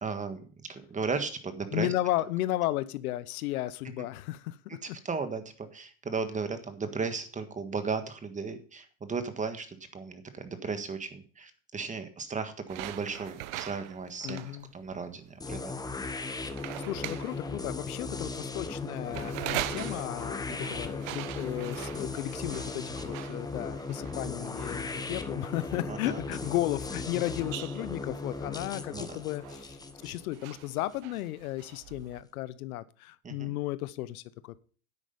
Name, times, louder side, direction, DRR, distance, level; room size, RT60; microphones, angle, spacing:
voice 1, 0.0-1.9 4.0-4.1 4.7-14.4 14.7-15.7 20.6-20.7 25.9-26.2 28.9-29.2 33.2-33.5, right 4 dB, 15° right, 9 dB, 1.6 m, -35 dB
voice 2, 1.7-5.0 14.2-14.7 16.8-29.8 30.0-34.6, left 15 dB, 75° left, 16 dB, 1.0 m, -34 dB
sound 1, 12.7-32.2, right 15 dB, 65° right, 1.0 m, -43 dB
sound 2, 15.4-31.2, left 3 dB, 10° left, 1.1 m, -37 dB
10.0 x 8.4 x 5.3 m, 0.41 s
supercardioid pair, 115°, 44 cm